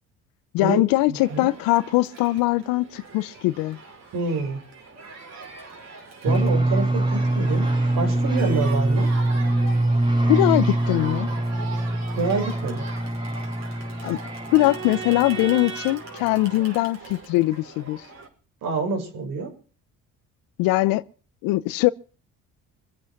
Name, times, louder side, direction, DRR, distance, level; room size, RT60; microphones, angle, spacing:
voice 1, 0.5-3.8 10.3-11.3 14.0-14.2 14.5-18.0 20.6-21.0 21.4-21.9, left 18 dB, 85° left, 0.8 m, -21 dB
Crowd, 1.1-18.3, right 4 dB, 50° right, 5.3 m, -40 dB
voice 2, 1.1-1.5 4.1-4.6 6.2-7.7 8.0-9.1 12.1-12.8 18.6-19.5, right 3 dB, 70° right, 6.5 m, -27 dB
sound 1, 6.3-15.8, right 1 dB, 15° right, 4.6 m, -24 dB
25.0 x 8.7 x 5.9 m
supercardioid pair, 75°, 34 cm